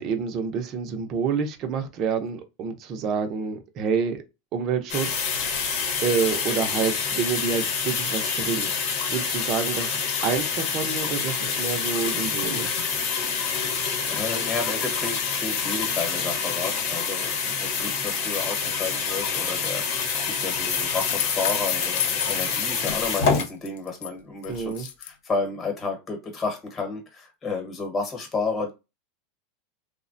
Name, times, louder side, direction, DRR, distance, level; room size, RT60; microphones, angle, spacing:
voice 1, 0.0-4.2 4.5-8.7 9.1-12.8 24.5-24.9, right 6 dB, 35° right, 0.6 m, -28 dB
sound 1, 4.9-23.4, left 5 dB, 55° left, 0.9 m, -27 dB
voice 2, 13.7-28.7, left 4 dB, 20° left, 1.1 m, -32 dB
sound 2, 20.7-24.1 24.4-25.1, left 10 dB, 85° left, 0.3 m, -32 dB
3.3 x 2.1 x 2.5 m
supercardioid pair, 150°, 0 cm